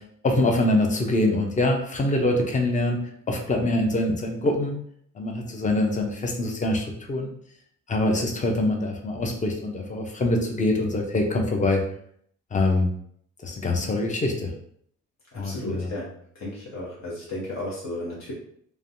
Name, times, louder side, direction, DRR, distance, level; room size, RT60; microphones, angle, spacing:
voice 1, 0.2-3.0 3.3-4.7 5.2-7.3 7.9-11.8 12.5-12.9 13.4-14.5 15.4-15.9, left 2 dB, 25° left, 2 dB, 0.6 m, -24 dB
voice 2, 15.3-16.1 16.3-18.3, left 1 dB, 60° left, -6 dB, 1.0 m, -34 dB
3.2 x 2.2 x 2.6 m, 0.67 s
cardioid pair, 90°, 30 cm